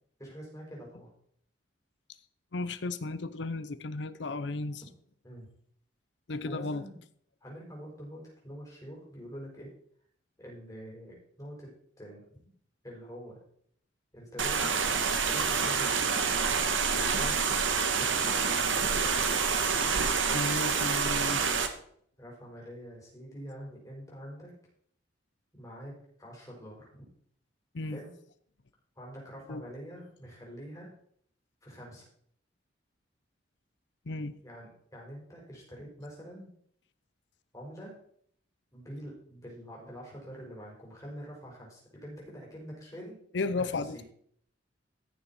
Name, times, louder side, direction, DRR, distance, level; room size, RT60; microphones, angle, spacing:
voice 1, 0.2-1.1 4.8-4.9 5.2-5.5 6.4-7.0 7.4-9.7 10.4-12.4 12.8-13.4 14.1-16.1 16.9-18.9 22.2-24.5 25.5-27.1 27.9-28.1 29.0-30.9 31.6-32.1 34.4-36.5 37.5-38.0 38.7-43.2 43.6-44.0, equal, 20° left, -3 dB, 4.8 m, -45 dB
voice 2, 2.5-4.8 6.3-6.8 20.3-21.4 27.7-28.0 29.5-29.6 34.1-34.3 43.3-44.0, left 3 dB, 65° left, 13 dB, 0.6 m, -34 dB
sound 1, 14.4-21.7, right 5 dB, 90° right, 1.3 m, -27 dB
14.5 x 6.9 x 4.3 m, 0.63 s
head